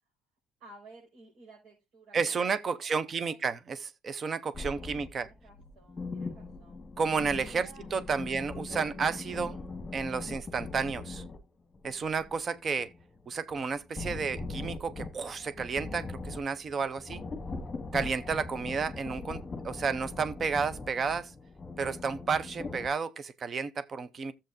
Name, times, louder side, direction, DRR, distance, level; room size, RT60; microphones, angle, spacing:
voice 1, 0.6-3.4 4.8-6.9 7.5-7.9 8.3-8.7, right 2 dB, 85° right, 5.2 m, -55 dB
voice 2, 2.1-5.3 7.0-9.6 9.9-11.2 11.8-12.9 13.3-17.2 17.9-21.3 21.8-24.3, right 5 dB, 30° right, 0.5 m, -32 dB
sound 1, 4.5-11.4 11.7-22.9, left 3 dB, 15° left, 1.5 m, -41 dB
14.5 x 7.5 x 2.5 m
cardioid pair, 175°, 0 cm